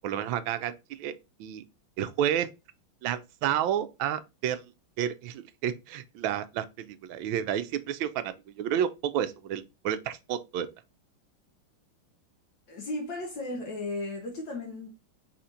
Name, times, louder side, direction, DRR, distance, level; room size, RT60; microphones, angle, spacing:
voice 1, 0.0-1.1 1.4-1.6 2.0-2.5 3.0-4.6 5.0-10.7, right 10 dB, 75° right, 1.2 m, -30 dB
voice 2, 12.7-14.9, left 2 dB, 65° left, 1.7 m, -35 dB
4.3 x 4.2 x 2.5 m
omnidirectional pair, 2.3 m